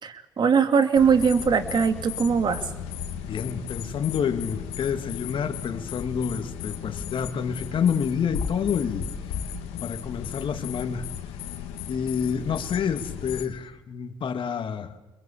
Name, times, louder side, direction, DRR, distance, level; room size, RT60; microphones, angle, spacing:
voice 1, 0.0-2.6, right 6 dB, 45° right, 8 dB, 2.7 m, -21 dB
sound 1, 0.9-13.5, left 8 dB, 80° left, 2.1 m, -35 dB
voice 2, 3.3-9.1 9.8-11.1 11.9-15.0, left 7 dB, 55° left, 7 dB, 2.3 m, -28 dB
26.0 x 22.0 x 8.6 m, 1.0 s
supercardioid pair, 65°, 10 cm